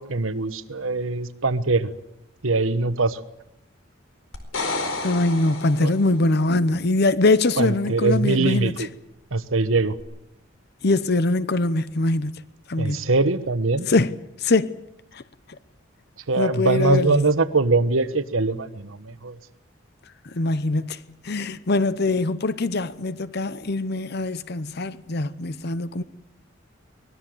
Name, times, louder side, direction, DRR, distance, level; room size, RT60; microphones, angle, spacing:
voice 1, 0.0-1.9 2.4-3.2 5.8-5.9 7.6-8.9 9.3-10.0 12.8-13.9 16.3-19.4, right 3 dB, 85° right, 1.3 m, -22 dB
sound 1, 4.3-6.3 10.0-10.1, left 3 dB, 85° left, 4.5 m, -30 dB
voice 2, 5.0-8.9 10.8-12.3 12.7-13.0 13.9-14.1 14.4-14.8 15.1-15.2 16.4-17.2 20.3-21.0 21.2-26.0, left 2 dB, 55° left, 0.8 m, -22 dB
24.0 x 20.0 x 7.9 m
head